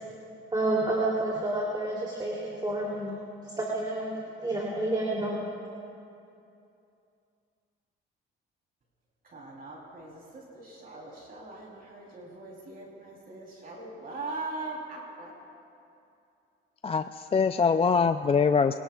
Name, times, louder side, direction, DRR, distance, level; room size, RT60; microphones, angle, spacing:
voice 1, 0.5-3.2 3.4-5.4, right 2 dB, 20° right, -4 dB, 3.0 m, -29 dB
voice 2, 9.2-15.3, right 3 dB, 45° right, -2 dB, 3.4 m, -41 dB
voice 3, 16.8-18.8, left 5 dB, 30° left, 9 dB, 0.4 m, -23 dB
24.0 x 18.5 x 2.4 m, 2.6 s
cardioid pair, 90°, 21 cm